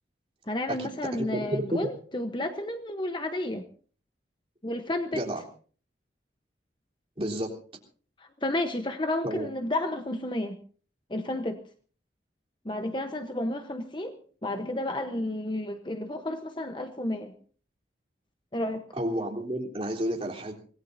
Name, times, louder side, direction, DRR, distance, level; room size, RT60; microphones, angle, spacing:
voice 1, 0.5-3.6 4.6-5.2 8.2-10.6 11.1-11.6 12.6-17.3 18.5-18.8, left 1 dB, 25° left, 7 dB, 1.0 m, -31 dB
voice 2, 1.3-1.8 5.1-5.4 7.2-7.5 9.2-9.5 19.0-20.5, equal, 30° right, -2 dB, 3.8 m, -30 dB
25.5 x 18.5 x 2.7 m, 0.42 s
head